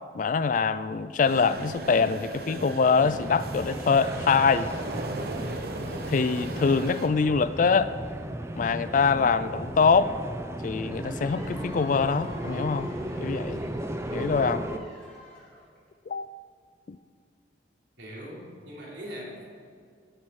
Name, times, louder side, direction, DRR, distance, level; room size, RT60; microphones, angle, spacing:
voice 1, 0.1-4.7 6.1-7.9 8.5-10.1 10.6-12.9 13.2-13.6 14.1-14.7 16.1-16.3 16.9-17.0, left 5 dB, 45° left, 14 dB, 0.4 m, -24 dB
sound 1, 1.2-7.1, right 2 dB, 55° right, 0.9 m, -37 dB
sound 2, 3.0-14.8, right 1 dB, 15° right, 0.5 m, -35 dB
Cheering / Applause / Crowd, 11.2-15.9, left 1 dB, 5° left, 3.5 m, -48 dB
voice 2, 18.0-19.4, equal, 75° right, -4 dB, 3.4 m, -40 dB
18.0 x 7.4 x 4.8 m, 2.2 s
head